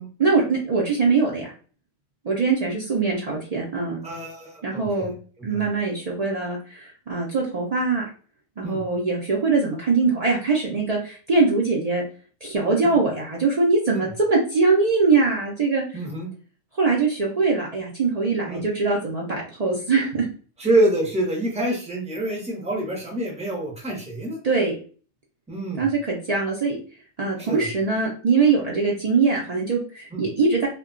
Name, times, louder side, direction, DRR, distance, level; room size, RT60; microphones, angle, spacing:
voice 1, 0.2-1.5 2.2-4.0 4.6-5.1 5.4-8.0 8.6-12.0 12.4-15.8 16.8-20.3 24.4-24.8 25.8-26.8 27.2-30.7, right 4 dB, 75° right, -3 dB, 0.3 m, -22 dB
voice 2, 4.0-4.9 5.4-5.6 8.6-8.8 12.8-12.9 13.9-14.0 15.9-16.3 18.5-18.6 20.6-24.4 25.5-25.9 27.4-27.7 30.1-30.2, right 1 dB, 10° right, -1 dB, 0.5 m, -26 dB
2.2 x 2.1 x 3.6 m, 0.40 s
omnidirectional pair, 1.4 m